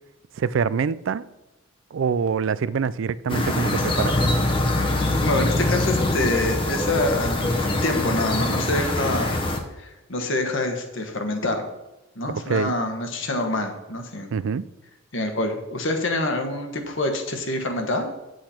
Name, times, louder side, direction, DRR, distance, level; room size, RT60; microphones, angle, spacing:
voice 1, 0.4-1.3 1.9-4.2 12.3-12.7 14.3-14.7, right 6 dB, 55° right, 0.3 m, -25 dB
sound 1, 3.3-9.6, left 1 dB, 25° left, 0.9 m, -23 dB
voice 2, 5.2-9.4 9.8-11.7 12.1-14.3 15.1-18.1, left 2 dB, 55° left, 1.4 m, -26 dB
8.5 x 7.9 x 4.4 m
head